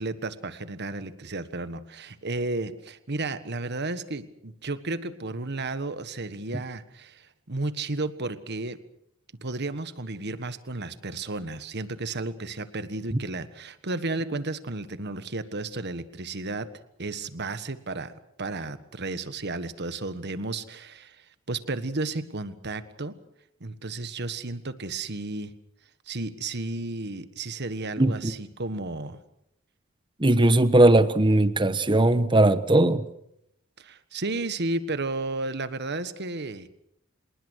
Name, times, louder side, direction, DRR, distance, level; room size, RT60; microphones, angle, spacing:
voice 1, 0.0-8.8 9.4-16.7 17.0-18.1 18.4-23.1 23.6-25.5 26.1-29.2 33.8-36.7, right 2 dB, 55° right, 1.5 m, -33 dB
voice 2, 28.0-28.3 30.2-33.0, right 1 dB, 25° right, 1.2 m, -19 dB
27.0 x 20.0 x 6.4 m
head